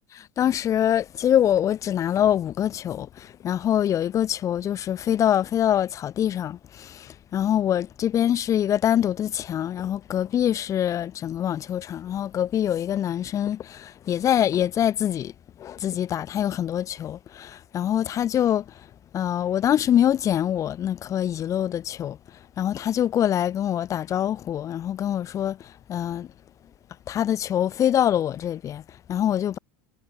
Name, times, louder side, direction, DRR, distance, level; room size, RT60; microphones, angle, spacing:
voice 1, 0.1-15.3 15.6-18.9 19.1-22.2 22.6-26.3 27.1-29.6, left 10 dB, 35° left, 2.9 m, -24 dB
supercardioid pair, 125°, 9 cm